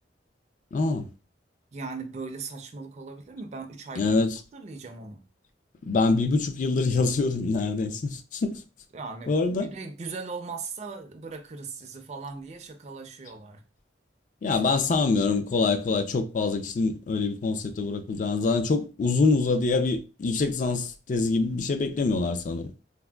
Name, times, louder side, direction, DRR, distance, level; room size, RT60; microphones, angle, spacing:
voice 1, 0.7-1.1 4.0-4.4 5.8-8.6 9.3-9.7 14.4-22.7, left 3 dB, 45° left, 0.3 m, -25 dB
voice 2, 1.7-4.2 4.5-5.3 8.9-13.6 14.5-14.9, right 4 dB, 35° right, 0.4 m, -39 dB
3.4 x 2.1 x 2.2 m
head